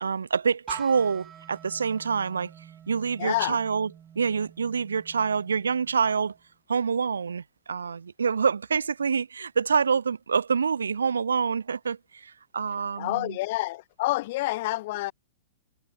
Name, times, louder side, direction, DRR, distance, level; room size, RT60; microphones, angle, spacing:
voice 1, 0.0-2.5 2.9-6.3 6.7-13.4, right 6 dB, 75° right, 1.1 m, -26 dB
sound 1, 0.7-6.5, right 9 dB, 20° right, 1.6 m, -48 dB
voice 2, 3.2-3.6 13.0-15.1, left 18 dB, 50° left, 0.4 m, -28 dB
figure-of-eight pair, 105°, 0 cm